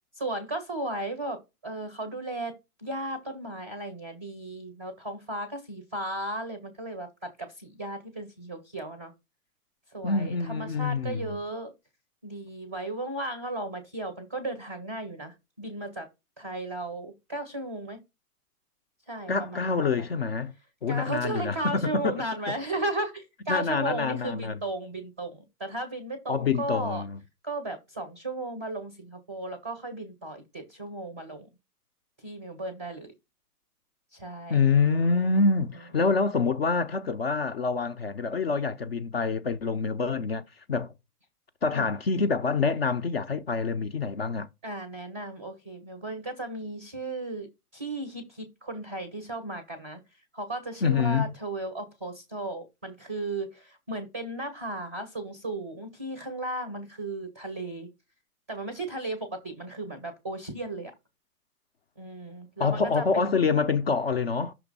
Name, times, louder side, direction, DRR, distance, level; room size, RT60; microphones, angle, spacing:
voice 1, 0.2-2.5 2.8-9.1 9.9-11.7 12.2-16.1 16.4-18.0 19.1-20.1 20.9-27.0 27.4-31.5 32.2-33.1 34.1-34.6 41.7-41.9 44.6-47.5 47.7-50.0 50.3-57.9 58.5-60.9 62.0-63.3, right 2 dB, 10° right, 0.5 m, -35 dB
voice 2, 10.0-11.4 19.3-20.5 20.8-22.1 22.5-22.6 23.5-24.6 26.3-27.2 34.5-40.9 41.6-44.5 50.8-51.3 62.6-64.5, left 4 dB, 45° left, 0.4 m, -26 dB
6.0 x 3.1 x 5.2 m
hypercardioid pair, 160°, 47 cm